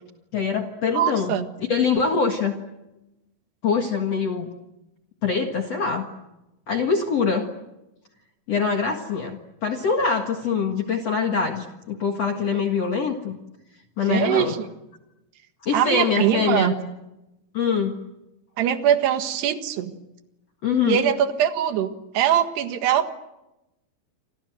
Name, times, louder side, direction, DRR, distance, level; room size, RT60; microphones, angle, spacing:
voice 1, 0.3-1.4 1.7-2.5 3.6-4.5 5.2-6.1 6.7-7.5 8.5-13.4 14.0-14.6 15.6-16.8 17.5-18.0 20.6-21.0, left 5 dB, 50° left, 4 dB, 2.3 m, -24 dB
voice 2, 0.9-1.5 14.1-14.6 15.7-16.8 18.6-19.9 20.9-23.1, right 10 dB, 85° right, 8 dB, 3.8 m, -22 dB
28.5 x 26.5 x 7.8 m, 0.95 s
omnidirectional pair, 4.6 m